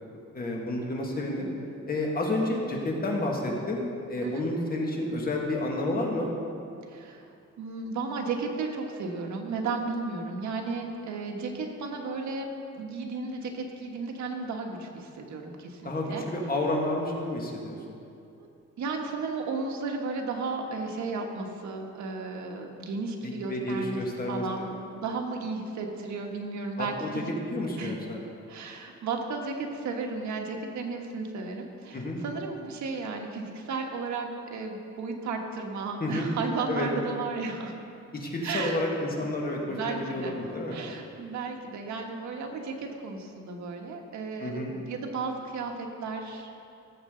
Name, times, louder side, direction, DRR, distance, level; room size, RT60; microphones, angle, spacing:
voice 1, 0.3-1.5 1.9-6.3 15.8-17.8 23.2-24.4 26.8-27.2 27.5-28.2 31.9-32.2 36.0-36.3 36.7-36.9 38.1-40.8 44.4-44.7, left 1 dB, 30° left, -1 dB, 1.9 m, -30 dB
voice 2, 6.9-7.3 7.6-12.5 12.8-16.2 18.8-24.0 24.3-27.3 27.8-28.0 28.5-37.7 38.4-38.8 39.2-39.3 39.7-40.4 40.7-46.6, right 4 dB, 75° right, 2 dB, 1.5 m, -34 dB
18.0 x 7.7 x 3.9 m, 2.6 s
cardioid pair, 125°, 29 cm